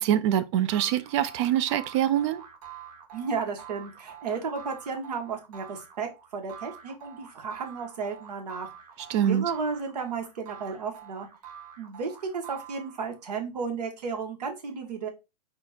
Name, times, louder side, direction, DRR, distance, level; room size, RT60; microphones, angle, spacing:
voice 1, 0.0-2.4 9.1-9.4, right 10 dB, 50° right, 0.5 m, -24 dB
sound 1, 0.7-13.2, right 8 dB, 75° right, 1.3 m, -46 dB
voice 2, 3.1-8.7 9.2-11.3 11.8-15.1, right 5 dB, 90° right, 1.4 m, -33 dB
4.4 x 2.4 x 4.2 m
hypercardioid pair, 140°, 20 cm